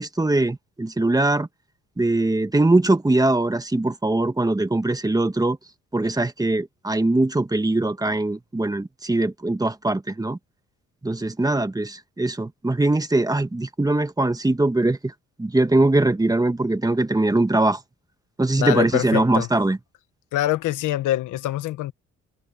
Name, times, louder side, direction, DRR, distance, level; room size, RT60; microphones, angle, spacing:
voice 1, 0.0-1.5 2.0-5.6 5.9-10.4 11.0-15.1 15.4-17.8 18.4-19.8, right 2 dB, 10° right, 1.5 m, -21 dB
voice 2, 18.6-19.5 20.3-21.9, left 14 dB, 90° left, 1.4 m, -24 dB
cardioid pair, 90°, 30 cm